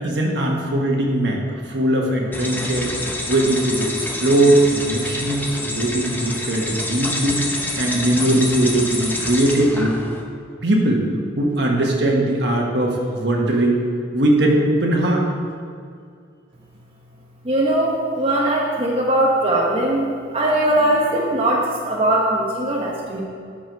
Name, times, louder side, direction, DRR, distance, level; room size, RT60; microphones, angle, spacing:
voice 1, 0.0-2.9 3.3-9.9 10.6-11.0 11.4-13.8 14.1-15.2, right 1 dB, 60° right, -1 dB, 1.4 m, -20 dB
sound 1, 2.3-10.2, left 1 dB, 10° left, 0.8 m, -27 dB
voice 2, 17.4-23.2, right 1 dB, 30° right, -3 dB, 1.0 m, -20 dB
10.0 x 6.2 x 5.3 m, 2.3 s
head